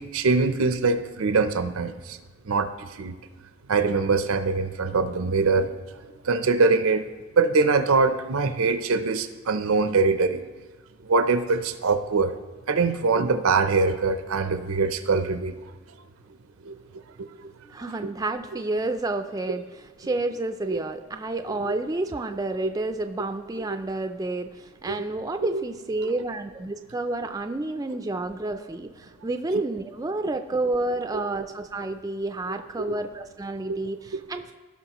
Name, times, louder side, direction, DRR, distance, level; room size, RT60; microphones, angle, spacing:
voice 1, 0.0-2.2 2.4-3.2 3.7-5.8 6.2-7.0 7.4-10.4 11.0-12.3 12.7-15.5 16.6-16.7 17.2-17.3 18.0-18.1 20.0-20.1 20.6-20.8 21.6-21.7 23.7-23.8 24.9-25.0 25.5-25.6 29.5-29.6 31.1-31.2 32.8-33.0 33.7-33.8, right 4 dB, 85° right, 10 dB, 0.6 m, -23 dB
voice 2, 17.7-19.6 20.0-34.5, right 2 dB, 15° right, 7 dB, 0.3 m, -30 dB
16.5 x 5.7 x 3.0 m, 1.4 s
head